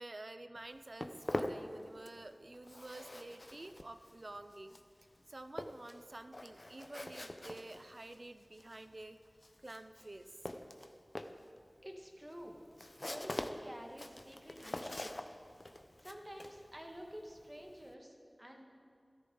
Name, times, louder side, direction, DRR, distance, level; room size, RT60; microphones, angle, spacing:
voice 1, 0.0-4.8 5.3-9.2 9.6-10.3, right 2 dB, 60° right, 9 dB, 0.6 m, -50 dB
Walk footsteps, 0.6-2.3 2.5-17.9, left 1 dB, 45° left, 0.7 m, -45 dB
voice 2, 11.8-12.6 13.1-15.2 16.0-18.6, equal, 20° right, 1 dB, 1.8 m, -50 dB
14.0 x 13.0 x 3.9 m, 2.3 s
wide cardioid pair, 45°, 0 cm